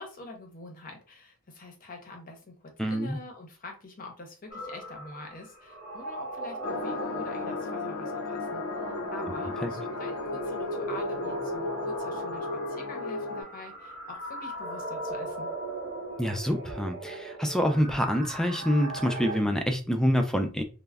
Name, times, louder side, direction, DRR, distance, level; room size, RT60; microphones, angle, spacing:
voice 1, 0.0-15.5, left 2 dB, 40° left, 0.6 m, -45 dB
voice 2, 2.8-3.2 9.6-9.7 16.2-20.6, equal, 5° left, 0.3 m, -26 dB
sound 1, 4.5-19.4, right 2 dB, 30° right, 0.8 m, -39 dB
sound 2, 6.6-13.4, left 3 dB, 80° left, 0.5 m, -34 dB
2.2 x 2.0 x 3.4 m
head